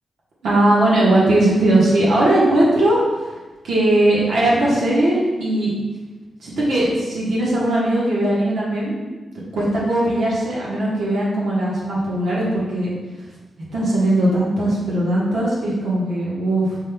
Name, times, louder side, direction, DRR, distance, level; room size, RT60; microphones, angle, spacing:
voice 1, 0.4-3.0 3.6-5.7 6.4-9.1 9.5-12.9 13.7-16.8, right 1 dB, 80° right, -6 dB, 1.2 m, -19 dB
5.0 x 3.7 x 2.2 m, 1.2 s
cardioid pair, 100°, 0 cm